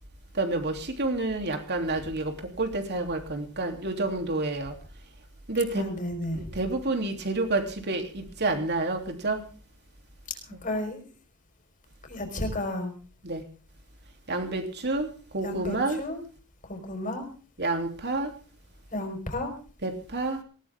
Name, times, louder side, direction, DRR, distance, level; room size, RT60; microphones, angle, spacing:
voice 1, 0.3-2.3 2.6-4.7 5.5-5.9 6.3-9.4 13.2-13.4 14.3-16.0 17.6-18.3 19.8-20.4, right 2 dB, 50° right, 5 dB, 3.3 m, -29 dB
voice 2, 5.7-6.4 10.6-11.0 12.1-12.9 14.4-14.6 15.4-16.2 16.6-17.3 18.9-19.5, left 1 dB, 40° left, 5 dB, 4.9 m, -32 dB
19.0 x 18.5 x 3.7 m, 0.38 s
head